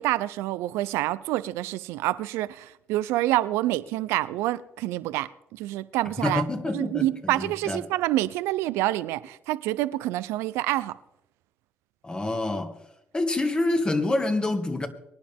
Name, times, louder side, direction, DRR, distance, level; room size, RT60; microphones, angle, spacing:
voice 1, 0.0-6.4 6.7-11.0, right 16 dB, 90° right, 0.6 m, -27 dB
voice 2, 6.2-7.8 12.0-12.8 13.1-14.9, left 2 dB, 20° left, 2.1 m, -27 dB
23.5 x 10.0 x 3.6 m
supercardioid pair, 80°, 4 cm